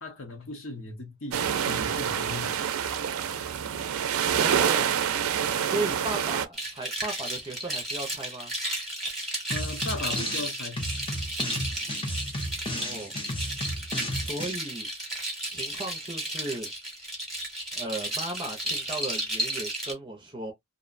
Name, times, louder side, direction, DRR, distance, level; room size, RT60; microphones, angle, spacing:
voice 1, 0.0-2.6 9.5-10.8, left 2 dB, 70° left, 0.8 m, -37 dB
sound 1, 1.3-6.4, right 8 dB, 85° right, 0.4 m, -27 dB
voice 2, 4.0-4.9 5.6-8.5 12.7-13.1 14.0-14.9 15.5-16.7 17.7-20.5, right 2 dB, 20° right, 0.4 m, -36 dB
sound 2, 6.5-19.9, right 1 dB, ahead, 0.9 m, -33 dB
sound 3, 9.5-10.5 10.8-14.5, equal, 25° left, 0.6 m, -33 dB
2.6 x 2.1 x 2.4 m
head